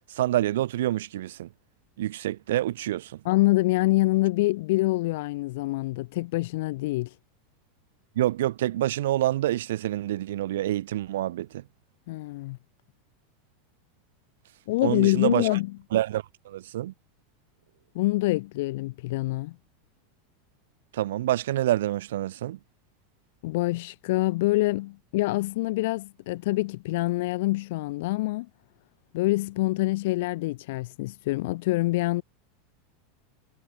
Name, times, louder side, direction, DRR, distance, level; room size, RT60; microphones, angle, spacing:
voice 1, 0.1-1.5 2.0-3.2 8.2-11.6 14.8-15.6 15.9-16.9 20.9-22.6, right 14 dB, 85° right, 0.9 m, -27 dB
voice 2, 3.2-7.1 12.1-12.6 14.7-15.7 17.9-19.5 23.4-28.5 29.1-32.2, left 20 dB, 60° left, 1.6 m, -25 dB
supercardioid pair, 165°, 0 cm